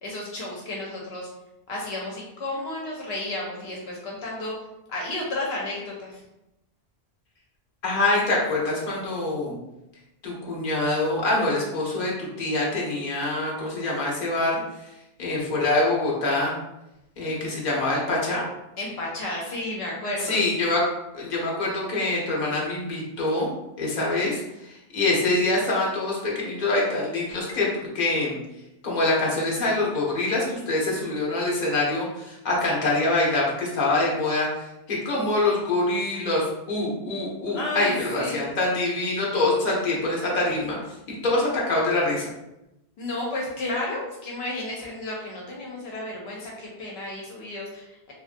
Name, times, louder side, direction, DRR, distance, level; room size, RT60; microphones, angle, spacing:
voice 1, 0.0-1.3 1.7-4.5 4.9-6.2 18.8-20.4 37.5-38.5 43.0-48.1, left 2 dB, 75° left, -2 dB, 0.9 m, -32 dB
voice 2, 7.8-9.5 10.2-14.6 15.2-16.5 17.2-18.4 20.2-20.8 21.1-23.5 23.8-28.3 28.8-40.8 41.1-42.3, left 2 dB, 50° left, -4 dB, 0.9 m, -25 dB
3.0 x 2.5 x 2.5 m, 0.90 s
omnidirectional pair, 1.1 m